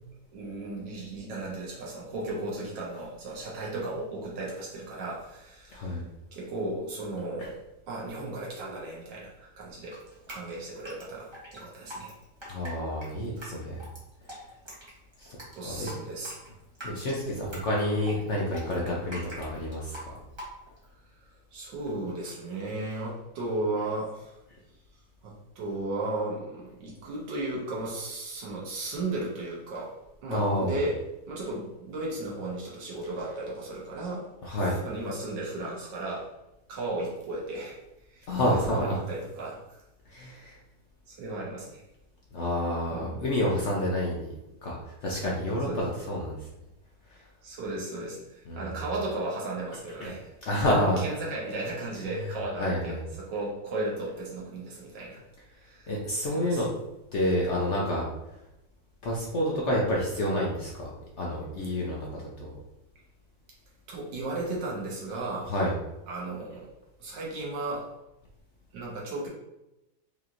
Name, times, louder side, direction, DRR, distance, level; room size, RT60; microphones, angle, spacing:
voice 1, 0.3-6.0 6.3-7.6 7.9-10.0 10.3-12.1 15.6-16.3 18.8-18.9 21.5-24.3 25.2-29.9 30.2-31.0 31.3-34.2 34.5-36.3 36.7-37.8 38.1-39.8 41.1-41.8 42.9-43.2 45.6-45.8 47.4-50.3 50.6-55.2 55.6-55.9 56.2-56.6 63.9-65.5 66.1-66.7 67.0-67.9 68.7-69.3, right 2 dB, 80° right, -4 dB, 1.6 m, -35 dB
voice 2, 5.7-6.0 7.4-7.5 12.5-13.8 15.2-15.9 16.8-20.1 30.3-30.8 34.4-34.8 38.3-39.0 40.1-40.6 42.3-44.3 44.6-46.4 47.1-47.2 48.5-48.8 50.0-50.1 50.5-51.0 52.6-53.0 55.9-56.7 57.1-58.0 59.0-62.5 65.4-65.7, left 1 dB, 65° left, -3 dB, 0.7 m, -29 dB
Drip, 9.9-20.9, equal, 25° right, 0.6 m, -44 dB
4.9 x 2.9 x 2.5 m, 0.93 s
omnidirectional pair, 1.9 m